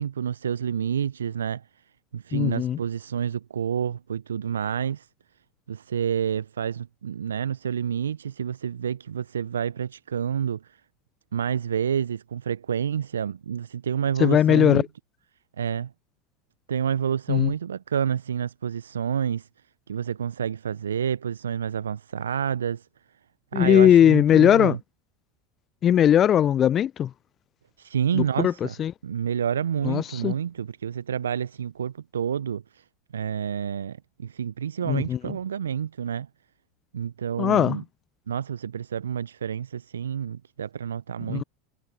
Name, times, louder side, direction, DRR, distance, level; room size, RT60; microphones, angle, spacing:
voice 1, 0.0-1.6 2.1-5.1 5.7-10.8 11.3-14.8 15.6-15.9 16.7-19.5 19.9-22.8 23.5-24.8 27.8-28.7 29.0-32.8 33.1-34.0 34.2-36.3 36.9-37.8 38.3-41.4, right 8 dB, 75° right, 0.7 m, -28 dB
voice 2, 2.3-2.8 14.2-14.8 17.3-17.5 23.5-24.8 25.8-27.1 28.1-28.5 28.8-28.9 29.8-30.3 34.9-35.2 37.4-37.8 41.3-41.4, left 10 dB, 35° left, 0.3 m, -19 dB
figure-of-eight pair, 80°, 0 cm